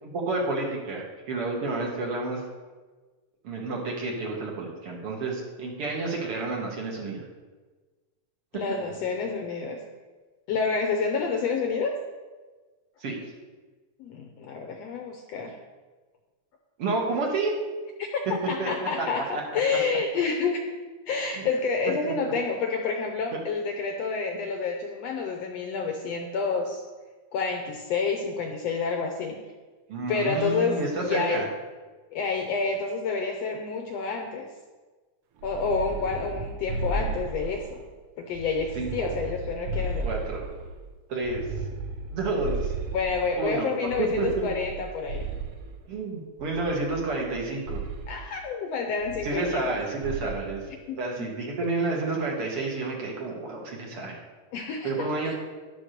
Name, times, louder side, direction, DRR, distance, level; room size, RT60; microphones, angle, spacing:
voice 1, 0.0-2.4 3.4-7.2 13.0-13.2 16.8-17.5 18.6-19.1 19.3-19.6 21.4-21.5 22.0-22.1 23.3-23.4 29.9-31.5 38.8-39.2 40.0-40.4 41.1-41.4 42.1-42.7 43.4-44.5 45.9-47.8 49.2-50.6 51.0-54.2 54.8-55.3, right 3 dB, 50° right, -2 dB, 2.3 m, -30 dB
voice 2, 8.5-9.8 10.5-11.9 14.0-15.6 18.0-18.2 18.5-20.7 21.1-26.8 27.3-29.4 30.1-31.5 32.1-34.5 35.4-37.8 38.2-40.1 42.9-45.3 48.1-49.8 50.9-51.0 54.5-55.3, left 4 dB, 70° left, 3 dB, 1.7 m, -29 dB
sound 1, 35.4-37.8 38.3-40.8 41.2-43.4 43.9-45.8 46.4-47.4 47.6-48.1 49.0-49.7 50.0-50.5, right 3 dB, 75° right, 1.3 m, -34 dB
11.0 x 6.2 x 6.6 m, 1.3 s
omnidirectional pair, 3.6 m